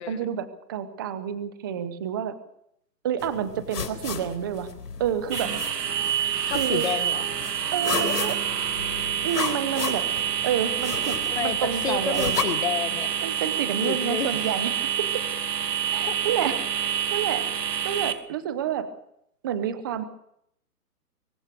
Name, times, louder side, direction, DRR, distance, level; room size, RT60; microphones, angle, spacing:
voice 1, 0.1-2.3 3.0-4.7 5.0-5.5 6.5-6.9 7.7-8.4 9.2-10.1 10.4-12.4 13.2-15.2 15.9-17.4 17.8-18.9 19.4-20.0, right 9 dB, 15° right, 12 dB, 0.8 m, -29 dB
sound 1, 3.2-12.4, left 6 dB, 75° left, 4.2 m, -34 dB
sound 2, 5.3-18.1, right 9 dB, 80° right, 2.8 m, -27 dB
voice 2, 6.5-7.2 11.2-13.2 13.8-14.6 16.1-16.2 16.9-17.0, left 9 dB, 40° left, 11 dB, 1.7 m, -31 dB
23.5 x 18.0 x 6.6 m, 0.73 s
hypercardioid pair, 160°, 47 cm